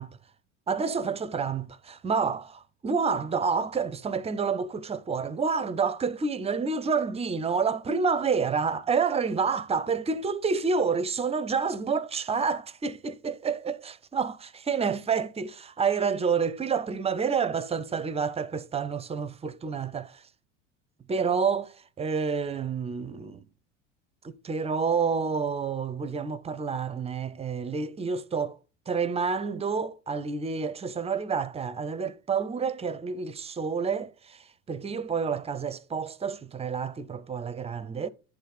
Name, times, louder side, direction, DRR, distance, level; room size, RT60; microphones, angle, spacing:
voice 1, 0.7-20.3 21.1-23.4 24.2-28.6 28.9-38.1, right 5 dB, 15° right, 0.5 m, -29 dB
11.0 x 4.1 x 4.0 m
hypercardioid pair, 75°, 36 cm